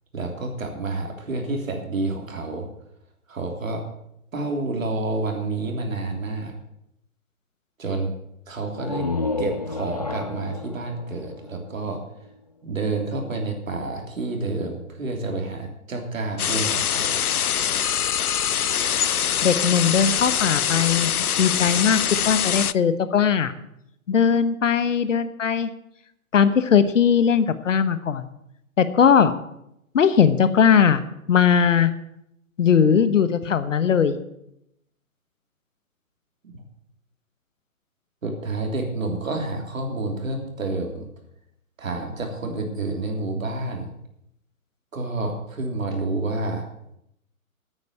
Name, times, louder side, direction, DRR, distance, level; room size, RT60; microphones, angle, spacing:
voice 1, 0.1-2.7 3.3-3.8 4.3-6.5 7.8-8.1 8.5-9.1 9.4-12.0 12.6-17.2 36.5-36.6 38.2-41.1 41.8-43.9 44.9-46.7, right 2 dB, 65° right, 3 dB, 3.3 m, -29 dB
sound 1, 8.7-12.4, left 3 dB, 30° left, 0.4 m, -31 dB
sound 2, 16.4-22.7, left 9 dB, 85° left, 0.6 m, -23 dB
voice 2, 19.4-21.1 21.4-23.5 24.1-25.7 26.3-28.3 28.8-29.3 29.9-31.0 31.3-31.9 32.6-34.2, left 7 dB, 60° left, 13 dB, 1.2 m, -19 dB
9.6 x 8.9 x 8.3 m, 0.79 s
figure-of-eight pair, 135°, 43 cm